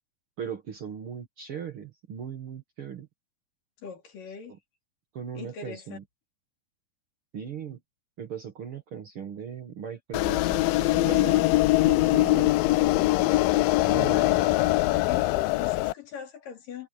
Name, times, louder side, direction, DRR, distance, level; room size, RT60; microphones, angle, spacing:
voice 1, 0.4-3.1 4.5-4.6 5.1-6.0 7.3-7.8 8.2-11.5 11.8-12.5 13.9-14.6, right 7 dB, 50° right, 2.0 m, -38 dB
voice 2, 3.8-4.5 5.3-6.0 14.1-14.5 15.1-16.9, left 7 dB, 70° left, 4.6 m, -41 dB
sound 1, 10.1-15.9, left 18 dB, 90° left, 2.4 m, -22 dB
omnidirectional pair, 4.0 m